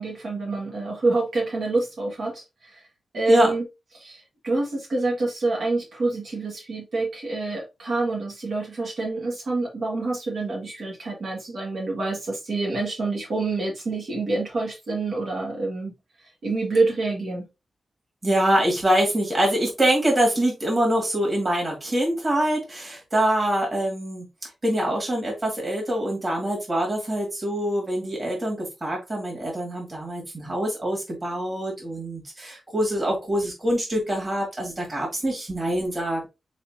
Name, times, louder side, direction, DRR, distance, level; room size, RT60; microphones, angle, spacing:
voice 1, 0.0-2.8 3.1-3.6 4.0-15.9 16.4-17.5, right 3 dB, 60° right, -2 dB, 1.8 m, -27 dB
voice 2, 18.2-36.3, right 1 dB, 25° right, -2 dB, 2.1 m, -24 dB
4.3 x 4.1 x 2.8 m, 0.24 s
wide cardioid pair, 180°, 0 cm